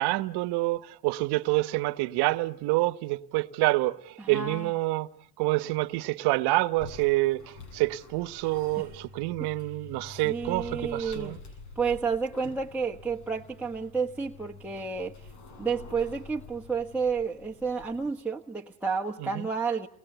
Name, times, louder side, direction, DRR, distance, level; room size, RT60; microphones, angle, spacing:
voice 1, 0.0-5.1 5.4-11.4 19.2-19.5, right 19 dB, 75° right, 1.2 m, -27 dB
voice 2, 4.2-4.7 8.8-8.9 9.4-9.5 10.2-11.4 11.7-15.3 15.6-19.9, right 5 dB, 5° right, 1.3 m, -31 dB
sound 1, 6.7-18.2, left 3 dB, 70° left, 8.0 m, -47 dB
29.5 x 21.5 x 8.1 m
supercardioid pair, 100°, 40 cm